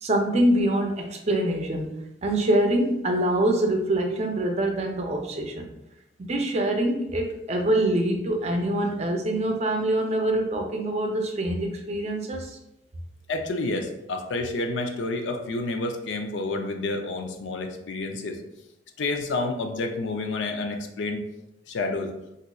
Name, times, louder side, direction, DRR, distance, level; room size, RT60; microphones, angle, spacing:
voice 1, 0.0-1.9 2.2-5.7 6.2-12.6, right 1 dB, 35° right, 2 dB, 0.5 m, -25 dB
voice 2, 13.3-18.4 19.0-21.2 21.7-22.1, left 2 dB, 85° left, 4 dB, 0.4 m, -29 dB
4.0 x 2.5 x 2.3 m, 0.87 s
head